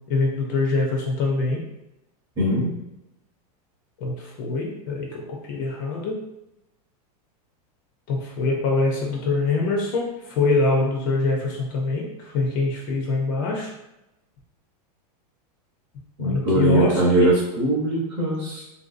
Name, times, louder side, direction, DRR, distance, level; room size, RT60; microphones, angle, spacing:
voice 1, 0.1-1.6 4.0-6.2 8.1-13.7 16.2-17.3, left 3 dB, 30° left, -1 dB, 0.4 m, -24 dB
voice 2, 2.4-2.7 16.2-18.6, right 1 dB, 15° right, -10 dB, 0.7 m, -21 dB
3.5 x 2.6 x 2.4 m, 0.89 s
supercardioid pair, 180°, 20 cm